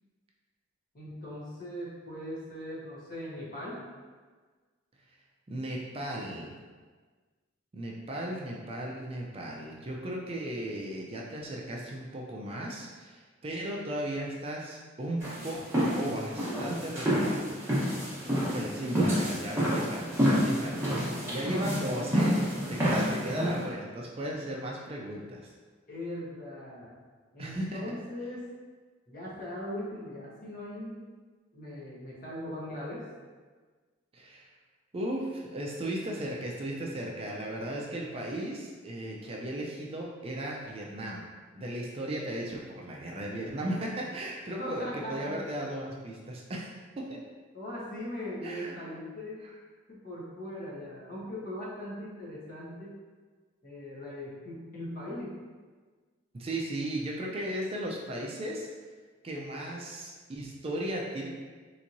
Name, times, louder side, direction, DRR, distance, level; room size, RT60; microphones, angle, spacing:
voice 1, 0.9-3.8 25.9-26.9 27.3-28.5 29.1-31.1 31.5-33.0 44.6-45.3 47.5-49.4 49.9-52.9 53.6-55.4, left 1 dB, 45° left, -7 dB, 1.0 m, -40 dB
voice 2, 5.5-6.6 7.7-17.5 18.5-22.4 22.7-25.5 27.4-27.8 34.1-34.5 34.9-41.2 41.5-47.2 48.4-48.7 56.3-58.7 59.2-61.3, right 1 dB, 30° right, -2 dB, 0.4 m, -36 dB
sound 1, 15.2-23.6, equal, 15° right, 0.9 m, -29 dB
3.4 x 2.9 x 2.6 m, 1.4 s
head